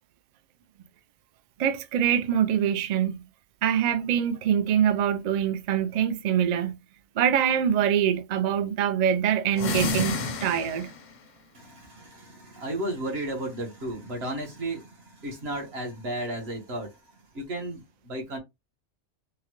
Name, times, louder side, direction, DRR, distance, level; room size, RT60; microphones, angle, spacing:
voice 1, 1.6-3.2 3.6-6.8 7.2-10.1 10.4-10.9, right 9 dB, 75° right, 0.4 m, -24 dB
sound 1, 9.5-11.1, left 3 dB, 50° left, 0.6 m, -30 dB
voice 2, 11.5-16.9 17.3-18.4, right 1 dB, 55° right, 1.4 m, -34 dB
3.8 x 2.1 x 3.0 m
omnidirectional pair, 1.3 m